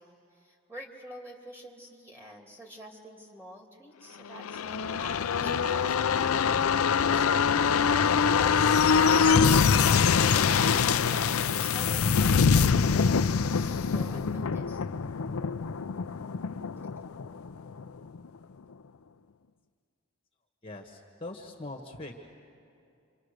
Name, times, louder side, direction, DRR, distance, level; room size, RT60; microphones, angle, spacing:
voice 1, 0.0-6.7 7.0-7.5 10.2-14.8, equal, 10° right, 0 dB, 2.8 m, -47 dB
sound 1, 4.4-17.8 18.2-18.3, left 6 dB, 85° left, 0.5 m, -24 dB
voice 2, 20.6-22.2, left 2 dB, 25° left, 1 dB, 1.4 m, -42 dB
29.0 x 25.5 x 6.6 m, 2.6 s
head